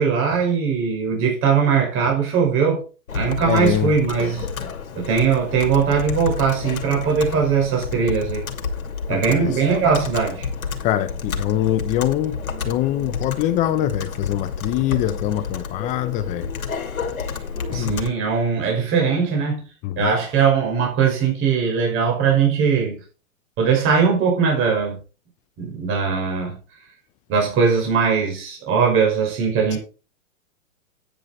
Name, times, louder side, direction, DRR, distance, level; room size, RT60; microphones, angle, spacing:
voice 1, 0.0-2.8 3.1-4.5 4.9-8.4 9.1-10.5 17.7-19.7 20.0-23.0 23.6-25.0 25.6-26.6 27.3-29.8, right 6 dB, 30° right, 5.7 m, -20 dB
Computer keyboard, 3.1-18.1, left 5 dB, 90° left, 2.5 m, -30 dB
voice 2, 3.4-3.9 9.1-9.6 10.8-12.4 12.6-16.5 17.7-18.0 19.8-20.1 29.7-29.8, left 12 dB, 20° left, 0.5 m, -23 dB
9.9 x 9.0 x 4.5 m
hypercardioid pair, 130°, 41 cm